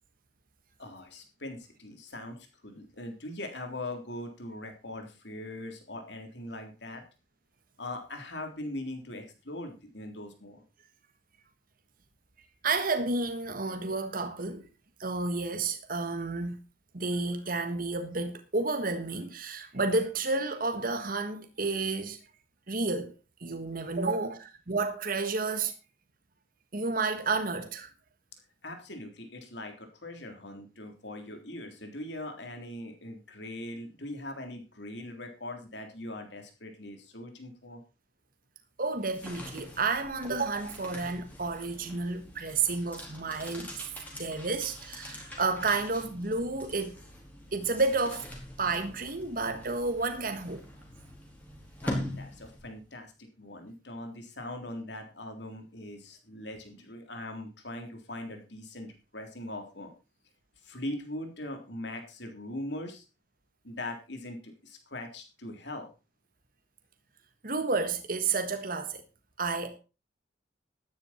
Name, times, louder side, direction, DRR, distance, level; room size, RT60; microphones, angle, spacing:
voice 1, 0.8-7.0 7.8-10.6 28.6-37.8 51.8-59.9 60.6-63.1 63.6-65.9, left 1 dB, 60° left, 3.6 m, -41 dB
voice 2, 12.6-14.7 15.0-16.6 16.9-22.2 22.7-25.7 26.7-27.9 38.8-43.9 44.1-47.0 47.5-48.3 48.6-50.7 67.4-69.0 69.4-69.8, right 3 dB, 50° right, 1.5 m, -31 dB
sound 1, 38.9-52.9, left 1 dB, 10° left, 4.4 m, -43 dB
13.0 x 10.5 x 4.4 m
head